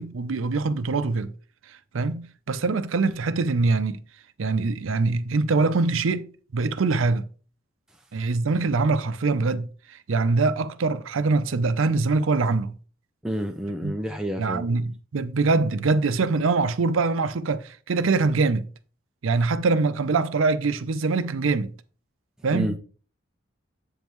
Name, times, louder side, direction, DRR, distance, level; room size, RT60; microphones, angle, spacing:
voice 1, 0.0-1.3 1.9-4.0 4.4-7.2 8.1-9.7 10.1-12.7 13.8-13.9 14.4-18.6 19.2-21.7 22.4-22.8, right 3 dB, 90° right, 0.5 m, -23 dB
voice 2, 13.2-14.7 22.5-22.8, equal, 5° right, 0.5 m, -29 dB
8.0 x 5.3 x 3.1 m
head